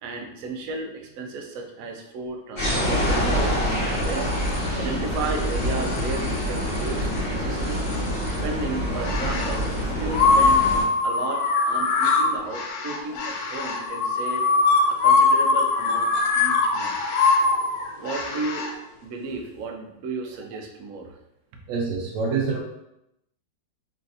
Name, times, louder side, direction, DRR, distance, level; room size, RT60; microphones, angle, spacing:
voice 1, 0.0-4.3 4.8-7.9 8.3-10.7 11.0-14.5 14.9-17.0 18.0-18.7 19.0-21.1, right 3 dB, 65° right, 2 dB, 0.8 m, -34 dB
sound 1, 2.6-10.8, equal, 40° left, 1.8 m, -26 dB
sound 2, 9.0-9.6 10.1-18.7, left 4 dB, 70° left, 1.0 m, -21 dB
voice 2, 21.7-22.6, right 5 dB, 90° right, -3 dB, 1.3 m, -26 dB
3.7 x 3.2 x 2.5 m, 0.82 s
omnidirectional pair, 2.0 m